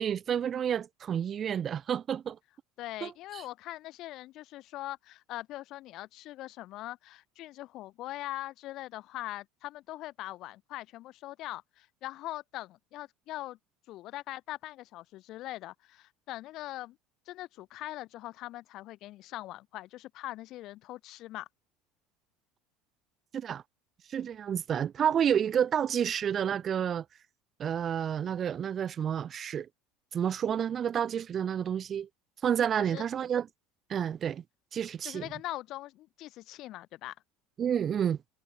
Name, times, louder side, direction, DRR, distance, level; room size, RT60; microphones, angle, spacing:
voice 1, 0.0-2.4 3.0-3.4 23.3-23.6 24.1-27.0 27.6-29.7 30.1-32.1 32.4-33.5 33.9-34.4 34.7-35.2 37.6-38.2, right 8 dB, 40° right, 0.3 m, -30 dB
voice 2, 2.8-13.6 13.9-17.0 17.3-21.5 32.8-33.0 35.0-37.2, left 16 dB, 55° left, 0.4 m, -41 dB
figure-of-eight pair, 65°, 0 cm